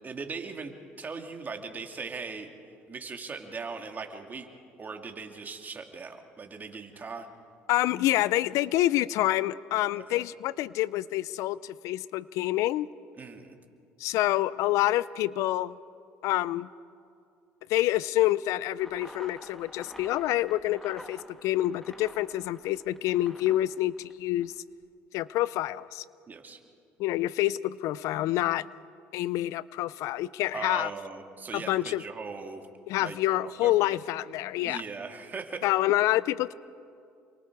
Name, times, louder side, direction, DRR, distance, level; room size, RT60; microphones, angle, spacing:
voice 1, 0.0-2.5 2.9-4.5 4.8-7.3 10.0-10.2 13.2-13.6 26.3-26.6 30.5-32.6 33.0-34.0 34.6-35.7, right 4 dB, 30° right, 4 dB, 2.4 m, -39 dB
voice 2, 7.7-12.9 14.0-15.8 16.2-16.7 17.7-24.5 25.1-26.0 27.0-28.7 29.1-30.9 31.5-32.0 32.9-34.8 35.6-36.5, left 15 dB, 70° left, 20 dB, 0.5 m, -27 dB
sound 1, 18.8-24.6, equal, 5° left, 2.0 m, -49 dB
29.0 x 23.0 x 4.8 m, 2.4 s
supercardioid pair, 80°, 6 cm